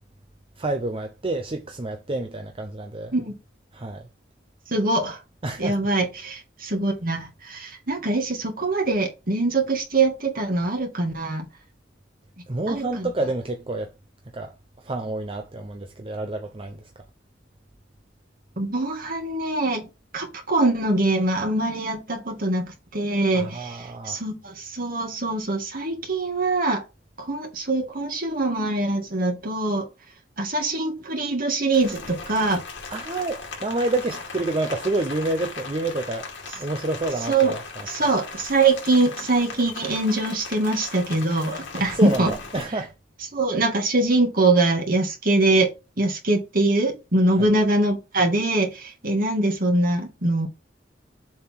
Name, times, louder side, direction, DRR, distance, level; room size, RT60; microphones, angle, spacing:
voice 1, 0.6-3.1 3.7-4.1 5.4-5.8 12.5-13.9 14.3-16.9 23.3-24.2 32.9-38.1 41.9-42.9 47.4-47.5, right 2 dB, 30° right, 0.8 m, -29 dB
voice 2, 4.7-5.2 5.6-11.4 12.7-13.1 18.6-19.8 20.1-26.8 27.2-29.9 30.4-32.6 37.3-37.6 37.9-42.3 43.3-45.7 46.0-50.5, right 2 dB, 50° right, 2.2 m, -23 dB
Rain, 31.7-42.6, left 4 dB, 85° left, 2.4 m, -38 dB
7.3 x 3.7 x 4.7 m
head